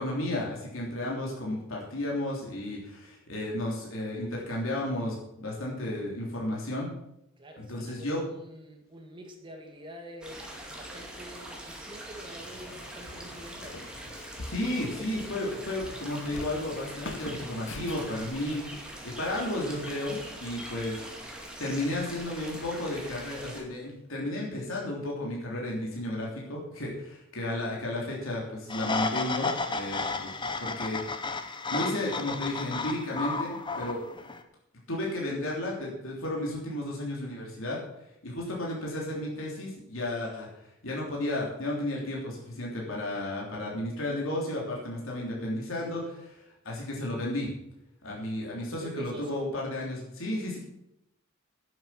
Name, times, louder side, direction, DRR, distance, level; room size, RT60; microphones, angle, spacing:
voice 1, 0.0-6.9 7.6-8.2 14.5-18.6 19.0-21.2 21.6-30.3 30.6-34.0 34.9-37.8 38.2-40.5 40.8-47.5 48.0-50.6, left 1 dB, 80° left, -3 dB, 3.3 m, -33 dB
voice 2, 7.4-13.9 18.4-18.8 34.1-34.3 48.6-49.4, right 1 dB, 25° right, 2 dB, 2.1 m, -46 dB
sound 1, 10.2-23.6, right 1 dB, 5° right, 2.2 m, -43 dB
Walk footsteps, 12.2-20.3, left 2 dB, 60° left, 1.2 m, -46 dB
sound 2, 28.7-34.4, left 3 dB, 25° left, 0.9 m, -33 dB
10.5 x 8.1 x 7.6 m, 0.83 s
head